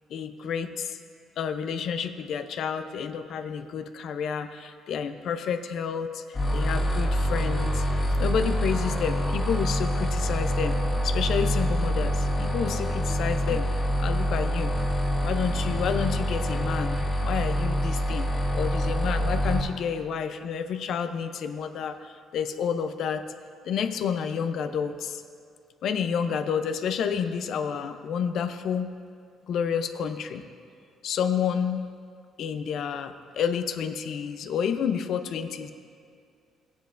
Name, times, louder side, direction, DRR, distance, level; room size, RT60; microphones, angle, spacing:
voice 1, 0.1-1.0 1.4-13.7 14.0-14.7 15.2-23.3 23.6-25.2 25.8-28.9 29.5-30.4 31.0-31.9 32.4-35.7, left 7 dB, 65° left, 9 dB, 0.6 m, -30 dB
sound 1, 6.3-19.6, equal, 30° left, 2.2 m, -26 dB
16.0 x 9.3 x 2.6 m, 2.3 s
cardioid pair, 105°, 0 cm